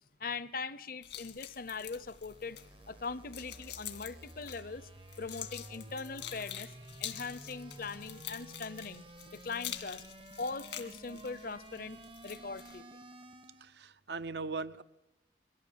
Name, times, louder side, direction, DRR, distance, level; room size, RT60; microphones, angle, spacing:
voice 1, 0.2-2.6 2.9-4.9 5.2-6.7 7.0-9.1 9.3-10.0 10.4-12.8, left 4 dB, 55° left, 0.8 m, -41 dB
sound 1, 1.0-12.8, left 10 dB, 85° left, 2.3 m, -47 dB
sound 2, 1.7-13.8, right 1 dB, 30° right, 0.8 m, -52 dB
voice 2, 13.6-14.8, right 4 dB, 75° right, 0.8 m, -39 dB
23.0 x 16.0 x 8.7 m
head